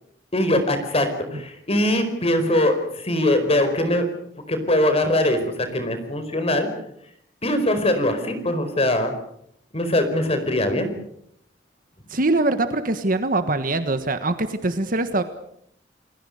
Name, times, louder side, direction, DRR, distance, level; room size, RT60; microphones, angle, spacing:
voice 1, 0.3-1.1 1.3-4.1 4.5-5.4 5.7-6.7 7.4-9.1 9.7-10.9, left 1 dB, 35° left, 8 dB, 4.8 m, -21 dB
voice 2, 12.1-15.2, right 2 dB, 50° right, 9 dB, 1.5 m, -23 dB
30.0 x 21.0 x 6.6 m, 0.73 s
head